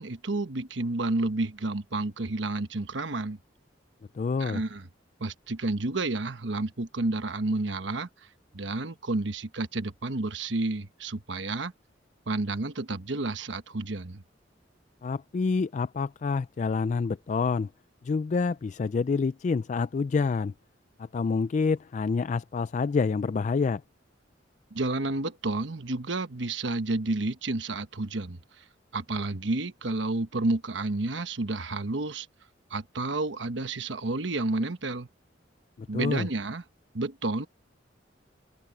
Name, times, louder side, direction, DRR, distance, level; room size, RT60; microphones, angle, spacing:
voice 1, 0.0-3.4 4.4-4.9 5.2-8.1 8.5-11.7 12.3-14.2 24.7-28.6 28.9-32.3 32.7-35.1 35.9-36.6 36.9-37.5, right 2 dB, 70° right, 1.2 m, -30 dB
voice 2, 4.1-4.6 15.0-17.7 18.0-20.5 21.0-23.8 35.8-36.3, left 4 dB, 40° left, 0.3 m, -27 dB
head